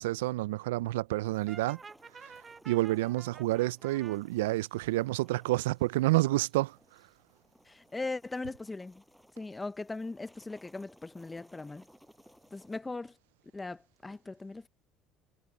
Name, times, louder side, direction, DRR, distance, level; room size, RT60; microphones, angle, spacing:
voice 1, 0.0-1.8 2.2-2.3 2.7-6.8, right 18 dB, 85° right, 0.3 m, -29 dB
sound 1, 1.3-12.8, equal, ahead, 6.3 m, -62 dB
Brass instrument, 1.5-4.2, right 4 dB, 30° right, 1.1 m, -50 dB
voice 2, 7.6-9.0 9.4-11.8 12.5-13.2 13.5-14.7, left 3 dB, 20° left, 0.7 m, -39 dB
hypercardioid pair, 75°, 0 cm